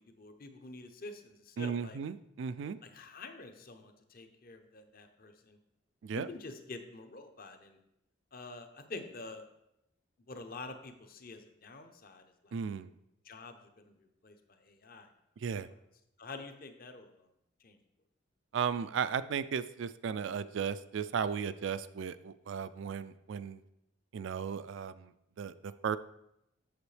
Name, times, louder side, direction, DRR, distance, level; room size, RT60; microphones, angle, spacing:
voice 1, 0.0-2.0 2.8-5.6 6.1-7.8 8.3-9.5 10.3-12.6 13.2-15.1 15.5-15.6 16.2-17.3 17.6-17.8, left 3 dB, 45° left, 7 dB, 0.7 m, -47 dB
voice 2, 1.6-2.8 6.0-6.3 12.5-12.9 15.4-15.7 18.5-23.6 24.1-25.1 25.4-26.0, right 7 dB, 65° right, 14 dB, 0.3 m, -35 dB
8.1 x 6.9 x 3.3 m, 0.82 s
head